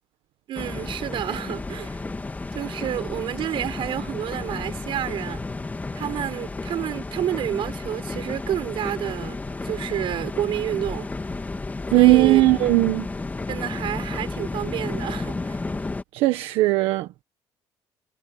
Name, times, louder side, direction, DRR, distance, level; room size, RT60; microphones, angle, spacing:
sound 1, 0.5-16.0, left 3 dB, 15° left, 1.7 m, -32 dB
voice 1, 0.5-2.0 2.5-5.4 5.9-11.1 11.9-12.5 13.5-15.6, right 11 dB, 65° right, 5.6 m, -29 dB
voice 2, 11.9-13.0 16.1-17.1, right 18 dB, 90° right, 1.5 m, -18 dB
cardioid pair, 110°, 9 cm